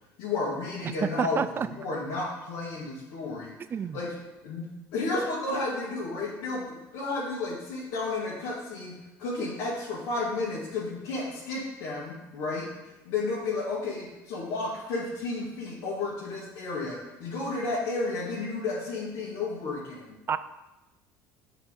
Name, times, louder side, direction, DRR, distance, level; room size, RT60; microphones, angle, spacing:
voice 1, 0.2-3.5 3.9-4.1 4.4-12.7 13.0-20.2, left 3 dB, 75° left, -6 dB, 1.9 m, -32 dB
voice 2, 1.0-1.7 3.7-4.0 20.3-20.4, right 7 dB, 30° right, 14 dB, 0.4 m, -28 dB
5.7 x 4.9 x 6.4 m, 1.0 s
supercardioid pair, 100°, 7 cm